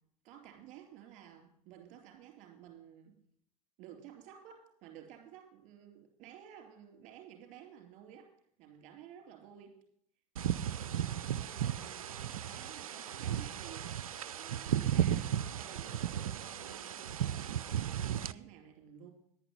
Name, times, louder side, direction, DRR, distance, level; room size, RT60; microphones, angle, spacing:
voice 1, 0.2-3.2 3.8-8.3 8.6-9.8 10.5-19.1, right 10 dB, 40° right, 2 dB, 3.8 m, -54 dB
sound 1, 10.4-18.3, right 10 dB, 70° right, 0.5 m, -35 dB
10.5 x 9.9 x 5.3 m, 0.67 s
figure-of-eight pair, 85°, 18 cm